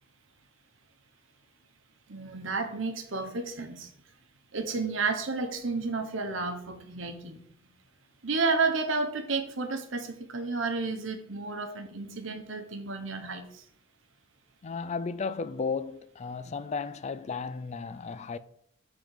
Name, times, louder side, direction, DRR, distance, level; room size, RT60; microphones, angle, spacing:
voice 1, 2.1-3.9 4.5-7.4 8.2-13.6, right 4 dB, 70° right, 1.0 m, -31 dB
voice 2, 14.6-18.4, left 5 dB, 35° left, 0.4 m, -34 dB
7.1 x 3.8 x 4.7 m
head